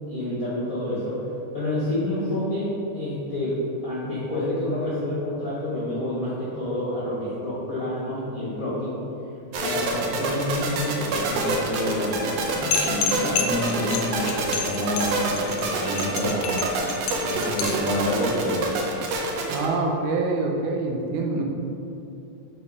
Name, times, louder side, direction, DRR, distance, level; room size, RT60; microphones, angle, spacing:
voice 1, 0.1-1.2 1.5-9.0 9.6-16.6 17.2-18.8, left 1 dB, 55° left, -9 dB, 0.9 m, -28 dB
sound 1, 9.5-19.7, right 2 dB, 70° right, 1.6 m, -27 dB
sound 2, 12.7-17.9, left 6 dB, 80° left, 1.7 m, -28 dB
voice 2, 19.5-21.4, right 3 dB, 85° right, 1 dB, 2.3 m, -25 dB
6.8 x 4.1 x 4.8 m, 2.7 s
omnidirectional pair, 3.5 m